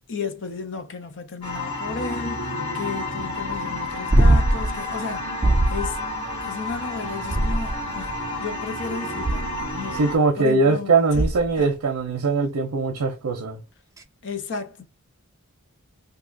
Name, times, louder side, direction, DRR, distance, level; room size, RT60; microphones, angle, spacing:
voice 1, 0.1-5.3 5.7-6.0 6.5-8.1 8.4-10.0 10.4-11.3 14.2-14.8, left 5 dB, 55° left, 0.6 m, -33 dB
sound 1, 1.4-10.2, left 2 dB, 80° left, 1.5 m, -30 dB
sound 2, 4.1-4.8 5.4-5.9 7.3-8.0 9.2-9.7 11.1-11.6 14.0-14.1, right 1 dB, 15° right, 0.4 m, -20 dB
voice 2, 9.9-13.6, right 3 dB, 75° right, 0.6 m, -21 dB
2.7 x 2.4 x 3.7 m
head